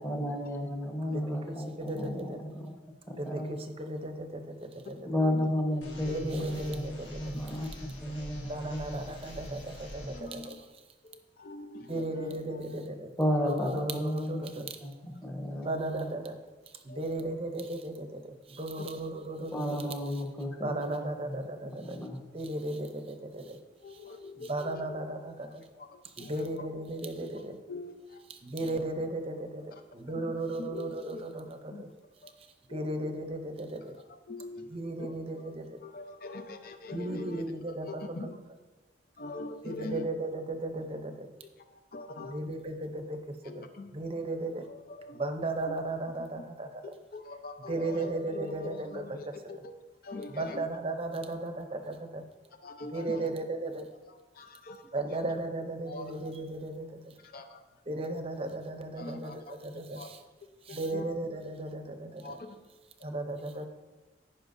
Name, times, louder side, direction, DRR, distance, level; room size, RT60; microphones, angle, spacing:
voice 1, 0.0-2.7 3.1-3.5 5.1-7.7 8.0-9.0 13.2-14.9 15.2-16.1 19.5-21.5 21.8-22.2, equal, 15° left, 0 dB, 1.2 m, -33 dB
voice 2, 1.1-2.4 3.2-5.0 6.1-7.4 8.5-10.6 11.9-13.1 13.4-14.7 15.5-16.4 16.8-19.9 20.6-22.0 22.3-23.6 23.9-24.0 24.4-25.6 26.2-27.6 28.3-31.9 32.7-34.0 34.7-35.8 36.9-38.0 39.6-41.3 42.2-43.2 43.4-43.7 43.9-44.7 45.1-46.8 47.7-49.2 50.3-52.2 52.9-53.9 54.9-57.1 57.9-60.2 60.6-62.4 63.0-63.7, right 2 dB, 30° right, 6 dB, 0.7 m, -36 dB
voice 3, 4.8-6.6 10.1-10.7 11.0-12.8 15.1-15.2 16.9-17.1 18.8-18.9 20.8-21.0 21.9-22.0 23.4-23.5 23.8-25.0 25.4-26.7 27.2-28.3 28.6-28.8 29.7-29.8 30.1-30.2 30.5-31.2 31.7-31.8 32.2-32.4 32.7-32.9 33.8-37.4 37.9-38.4 39.2-40.1 41.6-42.5 43.4-43.9 44.6-45.3 45.7-45.8 46.2-46.4 46.8-49.7 50.0-50.6 52.6-53.3 54.1-55.2 55.9-56.2 57.2-57.6 59.0-60.1 60.7-61.1 62.2-62.6, left 2 dB, 50° left, 7 dB, 0.7 m, -44 dB
sound 1, 5.8-10.2, equal, 80° left, 1.5 m, -42 dB
15.0 x 5.5 x 2.7 m, 1.2 s
head